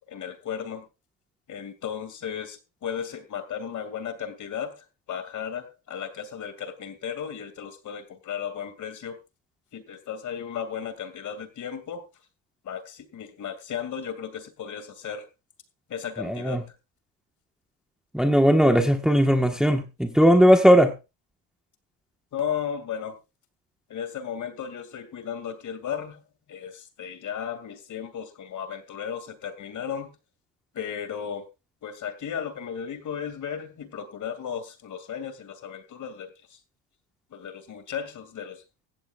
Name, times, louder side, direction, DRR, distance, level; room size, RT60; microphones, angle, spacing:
voice 1, 0.1-0.9 1.5-9.2 9.7-12.0 12.6-15.3 15.9-16.6 22.3-23.2 23.9-26.2 26.5-30.1 30.7-31.5 31.8-36.6 37.3-38.6, left 8 dB, 40° left, 2.5 m, -35 dB
voice 2, 16.2-16.6 18.1-20.9, equal, ahead, 1.3 m, -18 dB
16.0 x 15.0 x 2.4 m
cardioid pair, 125°, 43 cm